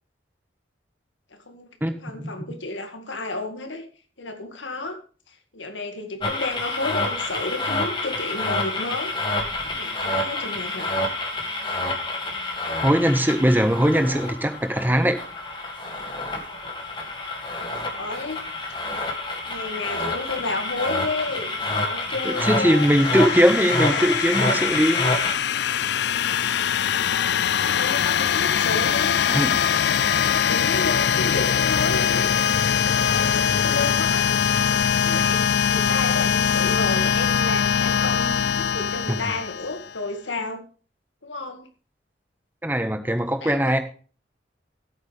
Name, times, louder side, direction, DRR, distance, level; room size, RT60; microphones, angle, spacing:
voice 1, 1.3-1.7 2.0-3.9 4.2-5.0 5.3-9.2 9.7-10.9 17.6-18.4 18.9-19.0 19.5-23.0 23.5-23.6 23.9-24.3 27.4-29.2 30.5-32.4 33.0-34.3 35.0-40.7 41.2-41.7 43.4-43.8, left 2 dB, 85° left, 5 dB, 2.1 m, -32 dB
voice 2, 1.8-2.6 12.8-15.2 22.2-25.0 29.3-29.5 39.1-39.2 42.6-43.8, equal, 10° right, 7 dB, 1.4 m, -21 dB
sound 1, 6.2-25.4, left 2 dB, 25° left, 2.2 m, -28 dB
sound 2, 22.3-40.0, left 8 dB, 65° left, 0.4 m, -22 dB
15.0 x 8.7 x 3.4 m, 0.39 s
head